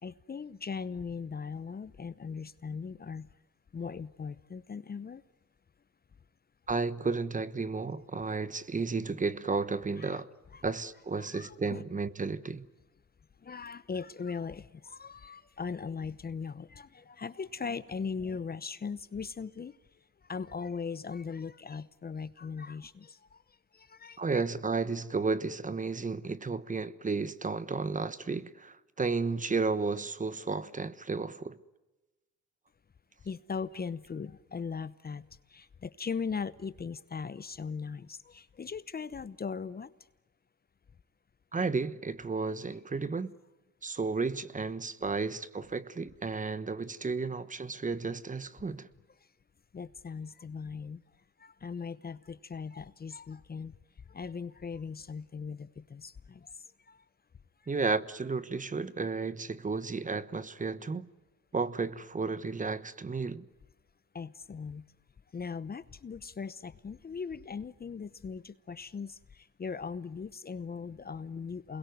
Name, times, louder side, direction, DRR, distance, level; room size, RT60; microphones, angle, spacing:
voice 1, 0.0-3.3 3.7-5.2 10.0-10.2 10.5-10.6 11.2-11.8 13.4-23.4 23.7-24.4 33.2-39.9 49.7-51.0 51.4-53.8 54.1-56.5 56.9-57.0 64.1-64.8 65.3-71.8, left 5 dB, 30° left, 0.9 m, -39 dB
voice 2, 6.7-10.3 10.6-12.7 24.2-31.6 41.5-43.3 43.8-48.9 57.7-61.1 61.5-63.5, right 4 dB, 25° right, 1.2 m, -33 dB
28.5 x 21.5 x 9.4 m
cardioid pair, 90°, 30 cm